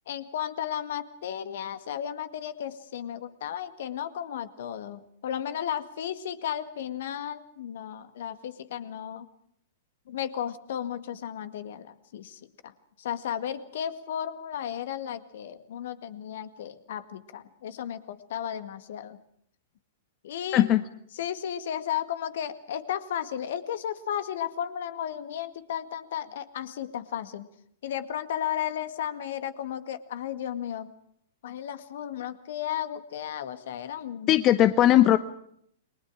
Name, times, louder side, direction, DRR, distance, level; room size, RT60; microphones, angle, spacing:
voice 1, 0.1-9.3 10.1-19.2 20.2-20.7 21.1-27.5 27.8-30.9 31.4-34.6, left 10 dB, 55° left, 10 dB, 1.9 m, -34 dB
voice 2, 34.3-35.2, left 13 dB, 30° left, 13 dB, 0.9 m, -19 dB
29.5 x 23.0 x 4.9 m, 0.69 s
figure-of-eight pair, 105°, 0 cm